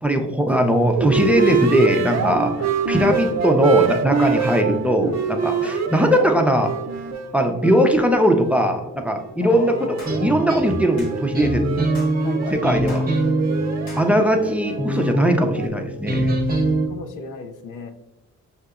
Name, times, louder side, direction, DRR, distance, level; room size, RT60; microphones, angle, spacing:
voice 1, 0.0-2.5 2.9-6.7 7.3-11.9 12.5-13.0 14.0-16.3, equal, 5° right, 4 dB, 0.5 m, -19 dB
sound 1, 0.9-8.6 9.0-15.7, right 6 dB, 60° right, 0.5 m, -26 dB
voice 2, 9.4-10.0 12.2-13.0 14.5-14.6 16.9-17.9, left 4 dB, 80° left, 6 dB, 0.6 m, -35 dB
sound 2, 10.0-10.2 11.0-11.2 11.9-12.2 12.9-13.1 13.9-14.1, left 2 dB, 65° left, 1.2 m, -41 dB
sound 3, 10.0-16.9, right 1 dB, 30° right, 0.8 m, -24 dB
5.5 x 2.8 x 2.4 m, 1.0 s
cardioid pair, 75°, 31 cm